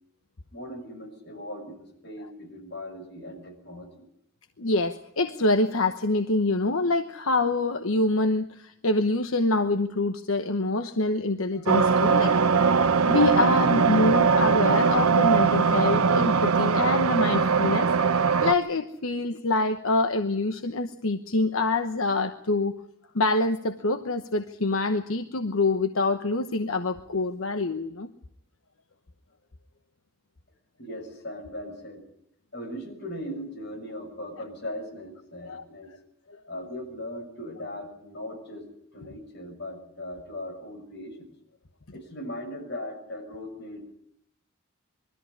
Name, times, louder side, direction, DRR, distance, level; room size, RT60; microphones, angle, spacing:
voice 1, 0.5-4.0 30.8-32.0 32.5-35.9 36.5-38.7 38.9-41.3 41.9-44.0, left 1 dB, 50° left, 3 dB, 6.5 m, -39 dB
voice 2, 4.6-12.6 13.0-22.7 23.1-28.1 35.4-35.6 36.3-36.4, left 2 dB, 80° left, 7 dB, 1.1 m, -26 dB
sound 1, 11.7-18.5, right 5 dB, 90° right, 0.9 m, -21 dB
22.5 x 14.0 x 9.9 m, 0.75 s
head